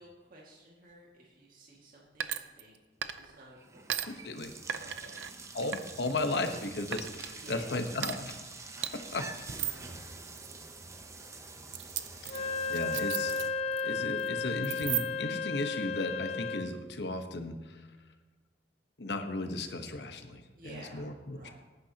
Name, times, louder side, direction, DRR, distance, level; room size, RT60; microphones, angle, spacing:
voice 1, 0.0-2.8 3.2-4.2 4.8-5.2 7.4-7.7 8.7-9.2 9.6-10.1 12.3-12.6 20.6-21.5, right 1 dB, 50° right, -3 dB, 2.0 m, -53 dB
sound 1, 2.2-2.8 3.0-3.4 3.9-4.1 4.7-5.3 5.7-6.6 6.9-7.3 8.0-8.2 8.8-8.9 9.5-9.8 10.3-10.5 11.7-13.8 14.1-14.3 14.6-15.3, right 10 dB, 90° right, 0.6 m, -36 dB
sound 2, 3.0-3.2 3.6-13.5, right 3 dB, 15° right, 0.8 m, -47 dB
voice 2, 4.1-4.5 5.5-8.7 9.1-9.2 12.2-13.4 13.8-18.0 19.0-21.5, left 2 dB, 70° left, 6 dB, 1.1 m, -36 dB
Wind instrument woodwind instrument, 12.3-16.8, left 5 dB, 35° left, 0.4 m, -33 dB
17.5 x 9.5 x 2.9 m, 1.2 s
head